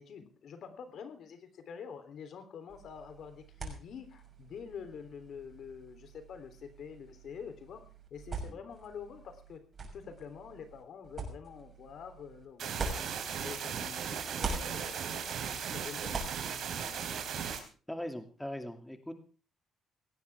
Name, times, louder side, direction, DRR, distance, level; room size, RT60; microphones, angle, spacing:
voice 1, 0.0-7.8 8.1-9.6 9.9-16.2, left 7 dB, 65° left, 9 dB, 3.4 m, -47 dB
sound 1, 2.7-13.9 14.2-17.6, right 3 dB, 40° right, 6.5 m, -44 dB
sound 2, 12.6-17.6, right 7 dB, 70° right, 4.0 m, -37 dB
voice 2, 17.9-19.1, left 1 dB, 5° left, 6 dB, 2.6 m, -40 dB
18.5 x 16.5 x 3.6 m, 0.37 s
cardioid pair, 90°, 0 cm